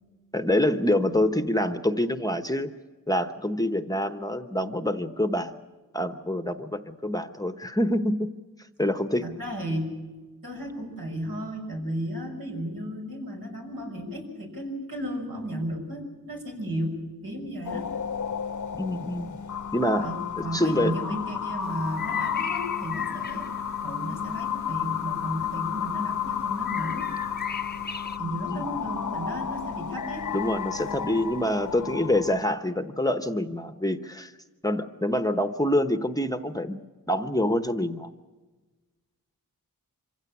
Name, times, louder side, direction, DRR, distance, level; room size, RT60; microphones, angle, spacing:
voice 1, 0.3-2.7 3.1-5.6 5.9-8.3 8.8-9.3 18.7-19.4 19.7-20.1 20.4-20.9 28.5-28.7 30.3-34.3 34.6-36.8 37.1-38.1, left 1 dB, 10° left, 8 dB, 1.0 m, -26 dB
voice 2, 9.2-10.0 10.4-17.9 20.0-23.6 23.8-27.1 28.2-30.2, equal, 75° right, 0 dB, 6.3 m, -34 dB
sound 1, 17.7-32.4, left 8 dB, 60° left, 0.9 m, -32 dB
sound 2, 21.6-28.2, left 5 dB, 30° left, 0.6 m, -40 dB
26.0 x 16.5 x 8.6 m, 1.3 s
wide cardioid pair, 80°, 35 cm